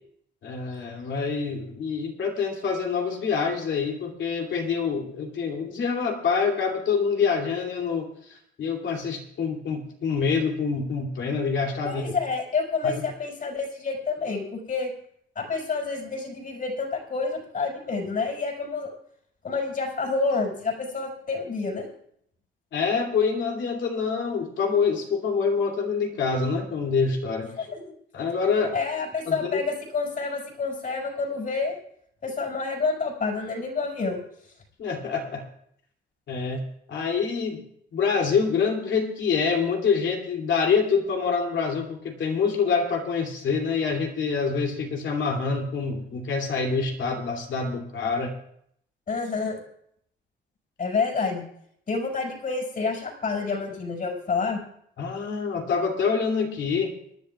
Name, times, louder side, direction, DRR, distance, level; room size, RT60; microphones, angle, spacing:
voice 1, 0.4-12.2 12.8-13.1 22.7-27.5 28.1-28.7 29.3-29.6 34.8-35.4 36.3-36.6 36.9-37.6 37.9-48.3 55.0-56.9, left 5 dB, 70° left, 1 dB, 2.8 m, -26 dB
voice 2, 11.9-14.9 15.4-18.9 19.4-21.8 27.6-27.9 28.7-31.8 32.2-34.2 49.1-49.6 50.8-51.4 51.9-54.6, left 4 dB, 45° left, 1 dB, 5.6 m, -28 dB
27.0 x 11.0 x 2.4 m, 0.67 s
cardioid pair, 90°, 20 cm